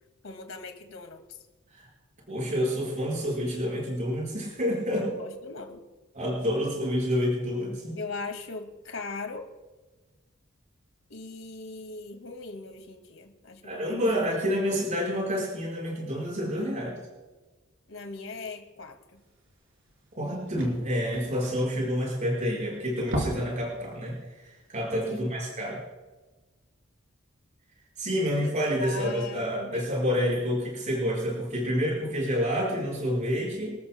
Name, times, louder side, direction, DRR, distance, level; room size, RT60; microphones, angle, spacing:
voice 1, 0.2-1.4 4.9-5.8 8.0-9.5 11.1-14.4 17.9-19.2 25.1-25.3 28.2-28.5 28.8-29.9, left 3 dB, 80° left, 5 dB, 2.2 m, -40 dB
voice 2, 2.3-5.1 6.1-8.0 13.6-17.0 20.2-25.8 28.0-33.8, equal, 35° right, -3 dB, 5.5 m, -28 dB
sound 1, 19.5-19.6 19.9-20.0 20.2-22.5 22.9-23.6 24.0-24.1 24.6-24.7, right 1 dB, 70° right, 4.8 m, -34 dB
27.0 x 14.0 x 2.3 m, 1.2 s
head